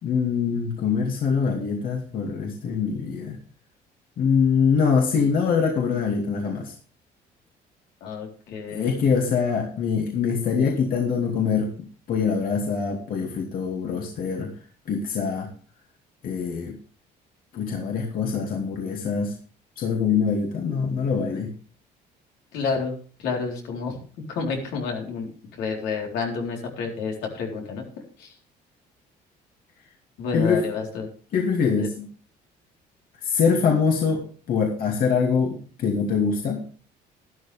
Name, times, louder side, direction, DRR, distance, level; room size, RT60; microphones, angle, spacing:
voice 1, 0.0-3.4 4.2-6.7 8.7-11.7 12.1-14.5 14.9-15.5 16.2-16.8 17.5-19.4 19.8-21.5 30.3-30.7 31.3-32.1 33.2-36.7, left 6 dB, 60° left, 0 dB, 2.5 m, -24 dB
voice 2, 8.0-9.0 22.5-22.9 23.2-24.0 24.3-25.3 25.6-27.8 28.2-28.3 30.2-31.1 31.8-31.9, left 5 dB, 85° left, 0 dB, 4.1 m, -29 dB
12.5 x 11.5 x 3.5 m, 0.41 s
cardioid pair, 110°, 17 cm